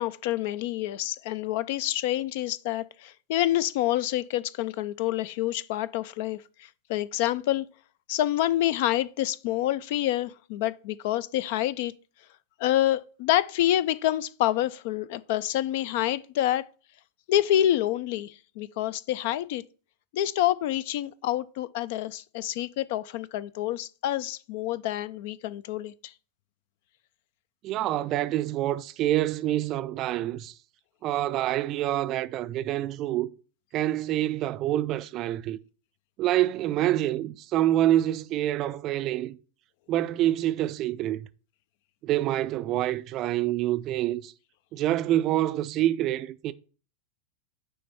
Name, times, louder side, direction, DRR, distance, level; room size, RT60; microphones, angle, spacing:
voice 1, 0.0-7.7 8.1-11.9 12.6-16.7 17.3-19.6 20.1-26.1, left 13 dB, 50° left, 0.4 m, -27 dB
voice 2, 27.6-30.5 31.0-33.3 33.7-35.6 36.2-39.4 39.9-41.3 42.0-44.3 44.7-46.5, right 13 dB, 35° right, 0.4 m, -26 dB
9.2 x 3.4 x 4.3 m
figure-of-eight pair, 90°, 0 cm